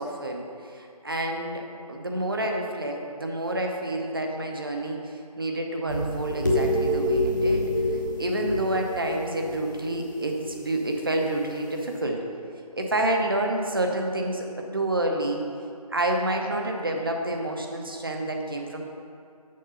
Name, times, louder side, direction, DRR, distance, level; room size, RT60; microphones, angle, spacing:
voice 1, 0.0-12.2 12.7-15.4 15.9-18.8, right 1 dB, 35° right, 2 dB, 0.9 m, -29 dB
Keyboard (musical), 5.8-7.7, right 4 dB, 65° right, 0.8 m, -39 dB
sound 1, 5.9-9.9 10.4-10.7, left 1 dB, 30° left, 1.0 m, -27 dB
7.6 x 6.6 x 5.4 m, 2.4 s
figure-of-eight pair, 165°, 20 cm